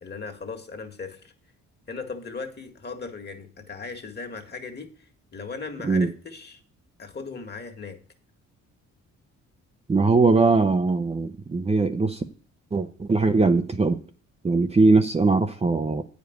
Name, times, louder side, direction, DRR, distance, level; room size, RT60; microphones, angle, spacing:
voice 1, 0.0-1.3 1.9-4.9 5.3-6.6 7.0-8.0, left 4 dB, 35° left, 4 dB, 1.9 m, -37 dB
voice 2, 9.9-12.2 12.7-14.0 14.4-16.0, right 3 dB, 20° right, 7 dB, 0.7 m, -21 dB
9.1 x 5.2 x 7.9 m, 0.40 s
cardioid pair, 90°, 30 cm